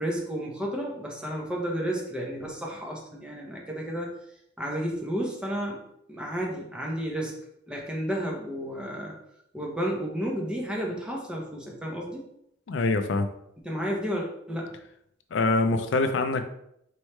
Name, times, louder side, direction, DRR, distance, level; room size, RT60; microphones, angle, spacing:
voice 1, 0.0-4.1 4.6-5.8 6.1-7.3 7.7-9.1 9.5-12.2 13.6-14.8, equal, 5° right, -2 dB, 0.8 m, -32 dB
voice 2, 12.7-13.3 15.3-16.4, left 3 dB, 70° left, 8 dB, 0.4 m, -24 dB
4.4 x 3.1 x 3.2 m, 0.75 s
head